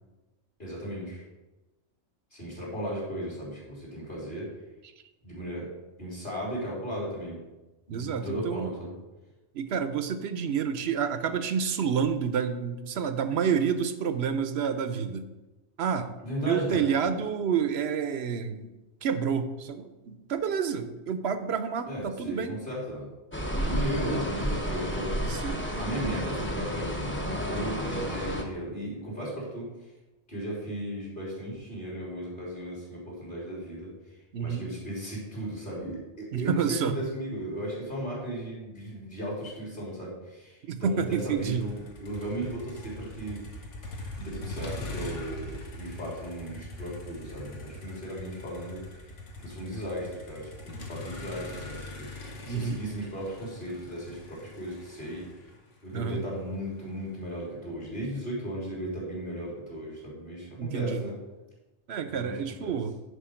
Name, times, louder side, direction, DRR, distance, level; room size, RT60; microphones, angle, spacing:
voice 1, 0.6-1.2 2.3-4.5 5.2-5.7 6.0-7.4 7.9-8.9 16.2-16.8 21.9-23.1 23.7-25.2 25.8-29.7 30.3-33.9 34.4-43.5 44.2-48.8 49.4-52.1 52.5-55.3 55.8-61.2 62.1-62.3 62.6-62.8, equal, 45° left, -5 dB, 3.8 m, -36 dB
voice 2, 7.9-8.7 9.5-15.3 15.8-16.1 16.4-18.7 19.0-22.6 23.5-23.8 24.1-24.2 25.2-25.6 34.3-34.7 36.3-36.9 40.7-41.7 52.5-52.8 55.9-56.2 60.6-61.0 61.9-62.9, right 7 dB, 65° right, 10 dB, 0.9 m, -29 dB
sound 1, 23.3-28.4, equal, 10° left, 1.0 m, -31 dB
Motor vehicle (road), 41.1-57.2, left 1 dB, 90° left, 1.5 m, -42 dB
10.0 x 5.1 x 5.1 m, 1.1 s
omnidirectional pair, 1.2 m